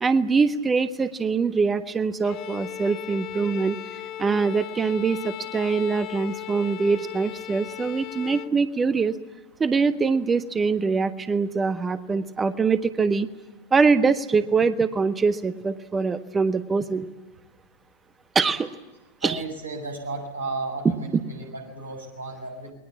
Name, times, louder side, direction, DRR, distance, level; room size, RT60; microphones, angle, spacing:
voice 1, 0.0-3.8 4.2-9.1 9.6-13.3 13.7-17.1 18.3-18.7 19.2-19.4 21.1-21.2, right 4 dB, 15° right, 11 dB, 1.4 m, -23 dB
Bowed string instrument, 2.2-8.6, left 13 dB, 35° left, 1.1 m, -37 dB
voice 2, 19.2-22.7, right 3 dB, 80° right, 2 dB, 7.0 m, -34 dB
28.5 x 21.5 x 7.3 m, 1.1 s
figure-of-eight pair, 90°, 0 cm